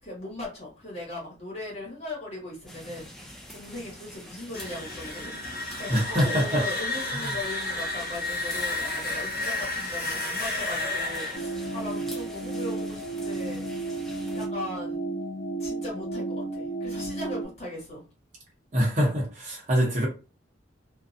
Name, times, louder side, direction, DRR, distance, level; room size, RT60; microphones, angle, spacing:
voice 1, 0.0-5.3 5.8-13.7 14.3-15.1 15.6-18.0, left 2 dB, 35° left, 1.2 m, -38 dB
sound 1, 2.7-14.5, equal, ahead, 0.4 m, -45 dB
sound 2, 4.4-13.2, left 2 dB, 50° left, 0.9 m, -32 dB
voice 2, 5.9-6.7 7.1-7.3 18.7-20.1, equal, 40° right, 0.8 m, -24 dB
sound 3, 11.3-17.4, right 2 dB, 75° left, 0.7 m, -32 dB
2.5 x 2.2 x 2.5 m
head